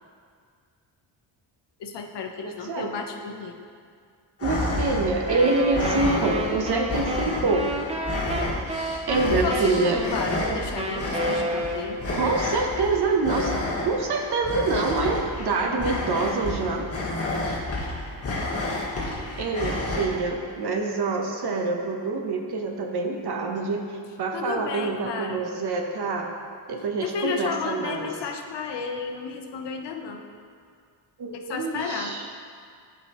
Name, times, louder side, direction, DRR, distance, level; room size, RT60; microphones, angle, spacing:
voice 1, 1.8-3.6 9.3-12.0 24.3-25.4 27.0-30.2 31.3-32.2, left 5 dB, 60° left, 4 dB, 0.8 m, -32 dB
voice 2, 2.4-2.9 4.4-7.7 9.1-10.0 12.1-16.9 19.4-26.3 26.7-28.1 31.2-32.3, right 3 dB, 55° right, 2 dB, 1.0 m, -26 dB
sound 1, 4.4-20.1, left 2 dB, 30° left, 1.4 m, -30 dB
Wind instrument woodwind instrument, 5.2-12.2, right 1 dB, 15° right, 0.4 m, -30 dB
14.5 x 5.2 x 3.0 m, 2.1 s
wide cardioid pair, 160°, 48 cm